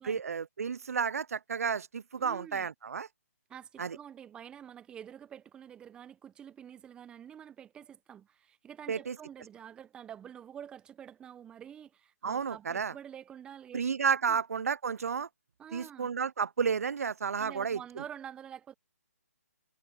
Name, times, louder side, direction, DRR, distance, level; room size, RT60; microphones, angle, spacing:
voice 1, 0.0-3.1 3.8-4.0 8.9-9.2 12.2-12.9 13.7-15.3 15.7-17.8, right 6 dB, 70° right, 0.4 m, -31 dB
voice 2, 2.2-2.7 3.5-13.8 14.3-14.4 15.6-16.1 17.4-18.7, right 9 dB, 10° right, 0.9 m, -48 dB
figure-of-eight pair, 140°, 8 cm